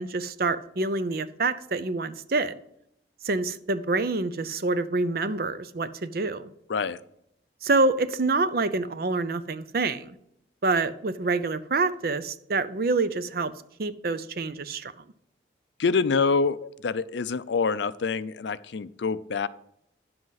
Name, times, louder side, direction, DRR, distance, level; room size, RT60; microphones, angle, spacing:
voice 1, 0.0-2.6 3.2-6.5 7.6-10.1 10.6-13.5 13.8-14.9, right 3 dB, 55° right, 0.6 m, -27 dB
voice 2, 15.8-19.5, left 4 dB, 80° left, 0.5 m, -26 dB
10.5 x 7.7 x 4.0 m
head